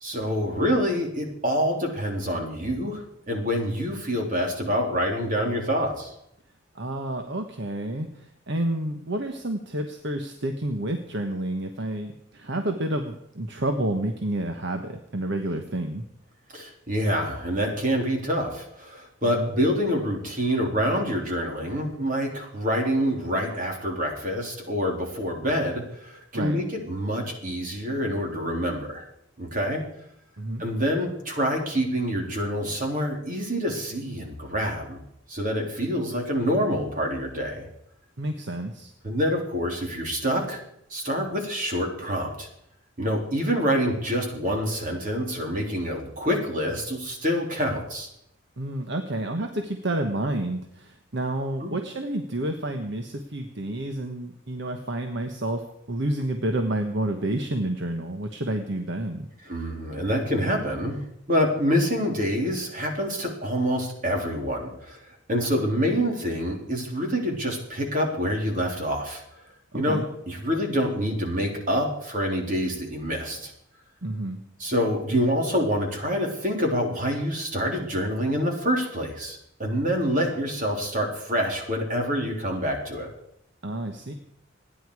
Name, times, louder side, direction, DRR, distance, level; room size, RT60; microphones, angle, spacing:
voice 1, 0.0-6.1 16.5-29.0 29.4-29.8 30.6-35.0 35.3-37.7 39.0-40.6 40.9-42.5 43.0-48.1 51.6-51.8 59.5-61.0 61.3-69.2 69.7-73.5 74.6-83.1, equal, 40° right, 1 dB, 3.7 m, -26 dB
voice 2, 6.7-16.0 19.2-19.5 26.3-26.6 30.4-30.6 38.2-38.9 48.6-59.3 69.7-70.1 74.0-74.4 83.6-84.1, right 1 dB, 60° right, 5 dB, 1.2 m, -29 dB
27.0 x 10.5 x 4.8 m, 0.77 s
head